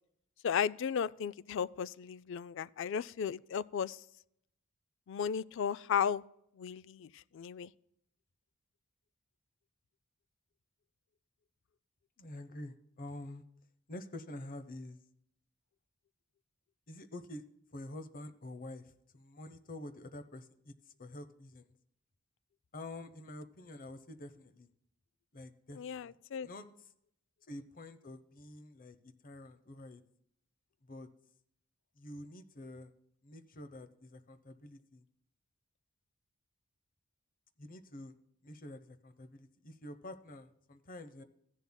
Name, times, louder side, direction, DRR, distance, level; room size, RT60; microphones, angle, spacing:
voice 1, 0.4-4.0 5.1-6.2 6.6-7.7 25.8-26.5, left 7 dB, 65° left, 0.3 m, -35 dB
voice 2, 12.2-13.4 13.9-15.0 16.9-17.4 17.7-20.7 21.0-21.7 22.7-24.7 25.3-26.2 26.4-26.7 27.5-30.0 30.9-31.1 32.0-32.9 33.2-35.0 37.6-38.1 38.4-41.2, left 1 dB, 45° left, 0.8 m, -48 dB
15.0 x 10.5 x 2.3 m
head